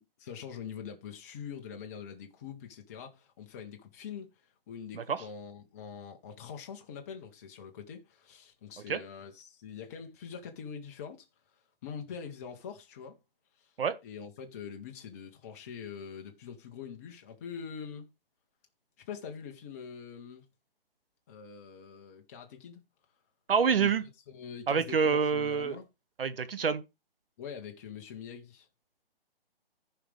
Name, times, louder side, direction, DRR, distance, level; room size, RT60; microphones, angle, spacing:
voice 1, 0.0-4.3 4.7-11.3 11.8-13.2 13.6-13.7 14.0-18.1 19.1-20.5 21.3-22.8 23.7-23.9 24.3-25.9 27.4-28.7, left 7 dB, 15° left, 0.6 m, -44 dB
voice 2, 23.5-24.0 24.7-25.8 26.2-26.8, right 6 dB, 70° right, 1.2 m, -27 dB
14.5 x 5.0 x 3.3 m
hypercardioid pair, 155°, 30 cm